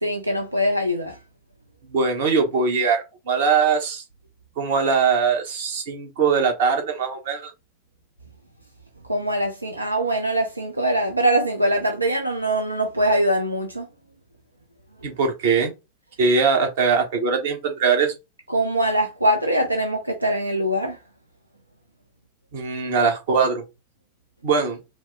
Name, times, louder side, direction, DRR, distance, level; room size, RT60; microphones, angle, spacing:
voice 1, 0.0-1.2 9.1-13.9 18.5-21.0, right 1 dB, 85° right, 0.6 m, -22 dB
voice 2, 1.9-4.0 4.6-7.5 15.0-15.7 16.2-18.1 22.5-23.6 24.4-24.8, right 5 dB, 55° right, 1.2 m, -21 dB
4.8 x 2.2 x 3.4 m
figure-of-eight pair, 90°, 0 cm